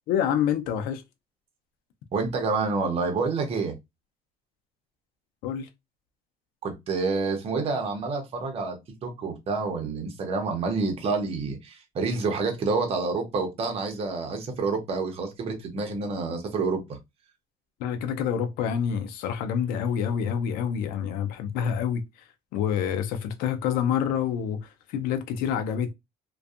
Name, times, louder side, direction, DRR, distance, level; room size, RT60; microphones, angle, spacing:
voice 1, 0.1-1.0 5.4-5.7 17.8-22.0 22.5-25.9, left 8 dB, 85° left, 0.5 m, -27 dB
voice 2, 2.1-3.8 6.6-17.0, right 4 dB, 40° right, 0.8 m, -28 dB
2.6 x 2.3 x 2.3 m
cardioid pair, 135°, 15 cm